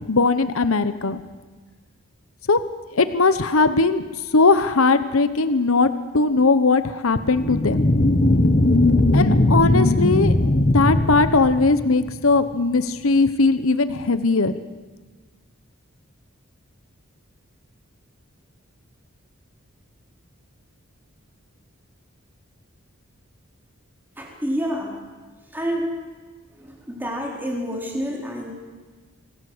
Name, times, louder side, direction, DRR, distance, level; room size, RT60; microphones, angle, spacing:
voice 1, 0.1-1.2 2.5-2.6 2.9-4.0 4.3-7.8 9.1-10.3 10.7-14.5, left 3 dB, 75° left, 12 dB, 1.0 m, -19 dB
sound 1, 7.3-12.2, left 1 dB, 40° left, 1.0 m, -19 dB
voice 2, 24.2-24.9 25.5-25.9 26.5-28.5, equal, 10° right, 0 dB, 4.2 m, -28 dB
25.0 x 17.5 x 8.0 m, 1.4 s
head